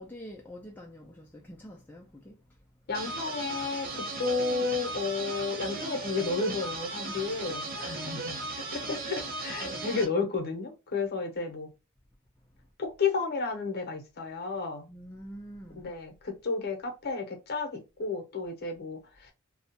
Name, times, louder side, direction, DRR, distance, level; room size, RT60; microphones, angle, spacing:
voice 1, 0.0-2.4 7.1-7.4 9.6-9.9 14.9-15.8, equal, 10° left, 0.3 m, -46 dB
voice 2, 2.9-11.7 12.8-14.9 15.8-19.3, left 4 dB, 45° left, 0.7 m, -32 dB
sound 1, 2.9-10.1, right 2 dB, 45° right, 0.5 m, -36 dB
2.3 x 2.0 x 2.8 m
head